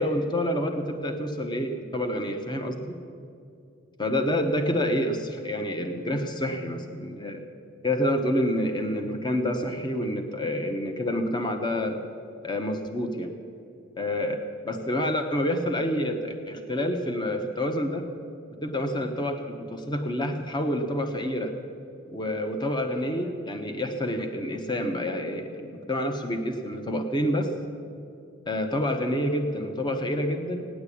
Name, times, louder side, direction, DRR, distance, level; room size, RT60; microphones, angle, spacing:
voice 1, 0.0-3.0 4.0-7.4 7.8-12.0 12.4-13.3 14.0-18.1 18.6-21.5 22.1-27.5 28.5-30.6, left 1 dB, 20° left, 5 dB, 1.0 m, -28 dB
16.5 x 10.0 x 8.5 m, 2.5 s
head